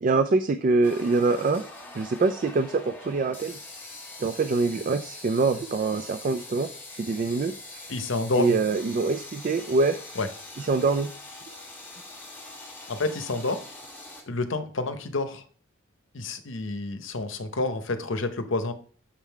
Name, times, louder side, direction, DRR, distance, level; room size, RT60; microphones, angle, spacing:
voice 1, 0.0-1.6 1.9-3.6 4.2-6.7 7.0-7.9 8.4-10.0 10.6-11.1, right 3 dB, 40° right, 9 dB, 0.3 m, -24 dB
sound 1, 0.8-14.2, left 2 dB, 10° left, 1.3 m, -43 dB
voice 2, 7.9-8.6 10.2-10.3 12.9-13.6 14.3-15.4 16.1-18.7, left 2 dB, 65° left, 9 dB, 0.8 m, -29 dB
7.3 x 3.7 x 4.5 m, 0.43 s
head